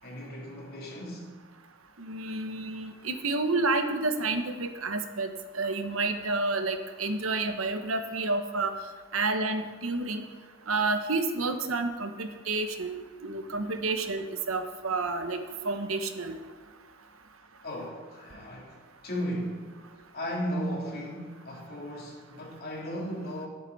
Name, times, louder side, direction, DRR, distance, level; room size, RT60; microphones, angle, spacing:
voice 1, 0.0-1.3 17.6-19.7 20.1-23.5, equal, 50° left, 3.2 m, -36 dB
voice 2, 2.0-8.7 9.1-10.2 10.7-15.4 15.6-16.4, right 3 dB, 85° right, 1.1 m, -30 dB
19.0 x 8.0 x 4.2 m
head